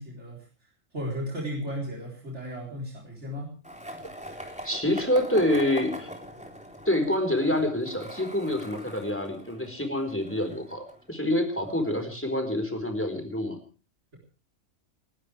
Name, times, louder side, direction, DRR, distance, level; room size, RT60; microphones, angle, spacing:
voice 1, 0.0-3.5, equal, 70° right, -3 dB, 4.5 m, -35 dB
Skateboard, 3.6-11.6, equal, 5° right, 3.7 m, -42 dB
voice 2, 4.6-6.1 6.9-13.6, left 1 dB, 10° left, 5 dB, 4.4 m, -27 dB
30.0 x 12.5 x 3.4 m, 0.37 s
omnidirectional pair, 1.2 m